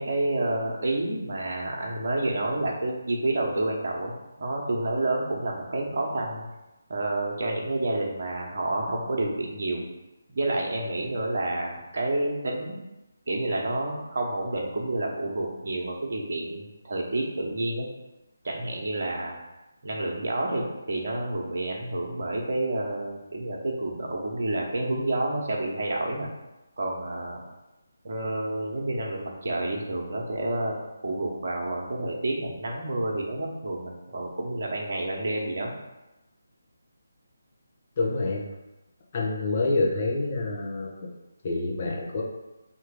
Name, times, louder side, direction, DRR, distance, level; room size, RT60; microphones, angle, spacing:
voice 1, 0.0-4.1 4.4-6.4 6.9-9.8 10.3-12.8 13.3-17.9 18.4-19.3 19.8-26.3 26.8-27.4 28.0-35.7, right 2 dB, 50° right, -1 dB, 1.1 m, -29 dB
voice 2, 38.0-38.4 39.1-41.1 41.4-42.2, left 2 dB, 35° left, -2 dB, 1.1 m, -27 dB
3.7 x 3.0 x 4.7 m, 1.0 s
figure-of-eight pair, 150°, 0 cm